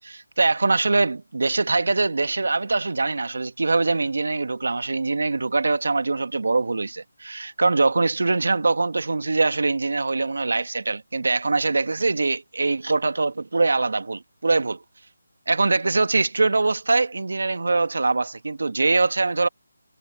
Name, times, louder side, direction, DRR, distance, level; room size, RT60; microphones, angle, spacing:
voice 1, 0.0-14.8 15.5-19.5, right 3 dB, 65° right, 1.6 m, -23 dB
figure-of-eight pair, 175°, 0 cm